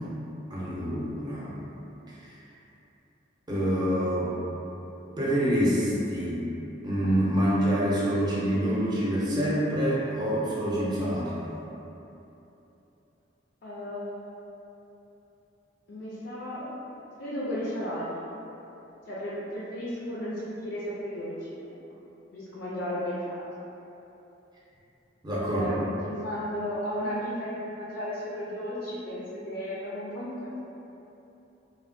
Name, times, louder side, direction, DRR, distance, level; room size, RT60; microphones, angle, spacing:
voice 1, 0.5-1.6 2.1-2.3 3.5-4.4 5.2-6.5 6.8-11.4 25.2-25.7, equal, 25° right, -7 dB, 0.6 m, -26 dB
voice 2, 13.6-14.3 15.9-16.8 17.2-18.3 19.1-21.8 22.3-23.5 25.5-25.7 26.0-30.6, equal, 65° left, -8 dB, 0.4 m, -34 dB
3.2 x 2.1 x 2.5 m, 3.0 s
head